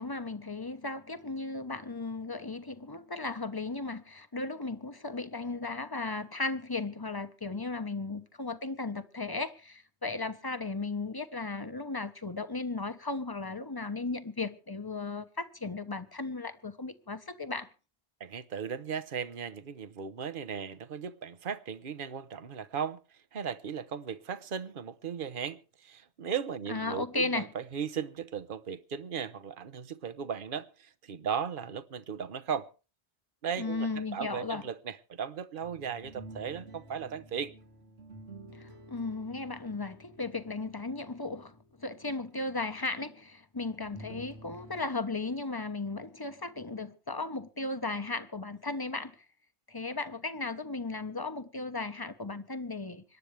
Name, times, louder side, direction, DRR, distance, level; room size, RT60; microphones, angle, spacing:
voice 1, 0.0-17.7 26.7-27.5 33.6-34.6 38.5-49.2 49.7-53.0, left 3 dB, 20° left, 1.1 m, -36 dB
voice 2, 18.2-23.0 23.3-32.7 33.4-37.5, right 7 dB, 55° right, 1.1 m, -37 dB
sound 1, 35.6-42.3 43.8-44.8, right 1 dB, 70° right, 2.4 m, -50 dB
26.0 x 12.0 x 3.4 m
omnidirectional pair, 1.1 m